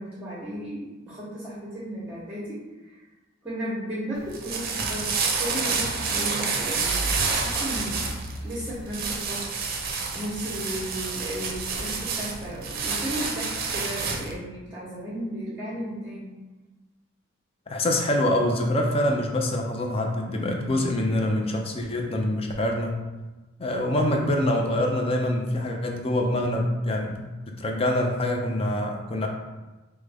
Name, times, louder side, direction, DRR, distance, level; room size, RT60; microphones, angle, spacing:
voice 1, 0.0-2.6 2.8-3.0 3.4-8.1 8.4-9.5 9.9-16.3, equal, 10° right, -9 dB, 0.9 m, -34 dB
sound 1, 4.1-14.4, right 4 dB, 50° right, 0.5 m, -29 dB
voice 2, 17.7-23.0 23.6-29.3, left 1 dB, 30° left, 2 dB, 0.4 m, -25 dB
4.8 x 2.1 x 3.4 m, 1.1 s
head